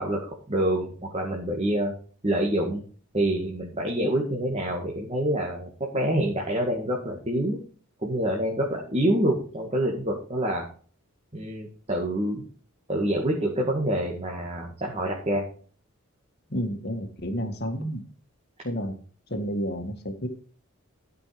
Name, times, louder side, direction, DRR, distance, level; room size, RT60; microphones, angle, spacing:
voice 1, 0.0-1.9 2.2-2.8 3.1-7.6 8.0-10.7 11.3-12.4 12.9-15.4, right 1 dB, 30° right, -1 dB, 1.9 m, -26 dB
voice 2, 16.5-18.0 18.6-19.0 19.3-20.3, equal, 45° left, 6 dB, 1.7 m, -30 dB
13.0 x 5.5 x 4.9 m, 0.43 s
head